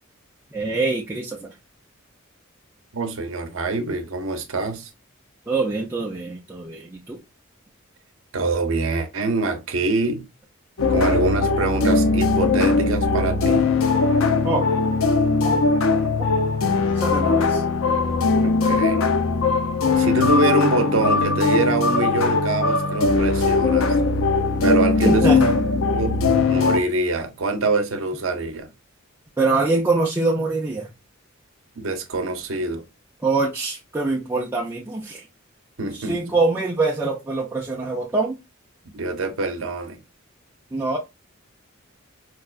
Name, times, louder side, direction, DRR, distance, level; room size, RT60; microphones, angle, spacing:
voice 1, 0.5-1.5 5.5-7.2 14.4-14.7 15.4-15.6 15.9-16.3 16.9-17.6 25.0-25.6 29.4-30.9 33.2-35.3 35.9-38.4 40.7-41.0, right 3 dB, 10° right, 0.4 m, -24 dB
voice 2, 2.9-4.9 8.3-10.3 10.9-13.7 18.4-19.1 20.0-23.9 24.6-25.3 25.9-28.7 31.8-32.8 35.8-36.2 38.9-40.0, right 2 dB, 70° right, 0.7 m, -25 dB
sound 1, 10.8-26.8, left 3 dB, 75° left, 0.5 m, -20 dB
4.6 x 2.2 x 2.4 m
head